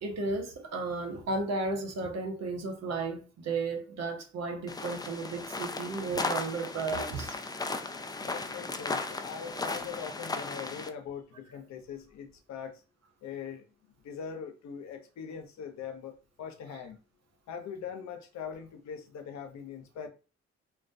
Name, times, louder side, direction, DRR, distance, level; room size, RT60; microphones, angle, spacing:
voice 1, 0.0-7.3, right 3 dB, 60° right, 0.8 m, -34 dB
sound 1, 4.7-10.9, left 3 dB, 15° left, 0.4 m, -36 dB
voice 2, 8.2-12.8 13.2-13.6 14.0-16.1 16.4-17.0 17.5-20.1, left 7 dB, 70° left, 0.6 m, -41 dB
2.3 x 2.2 x 2.5 m
supercardioid pair, 45°, 29 cm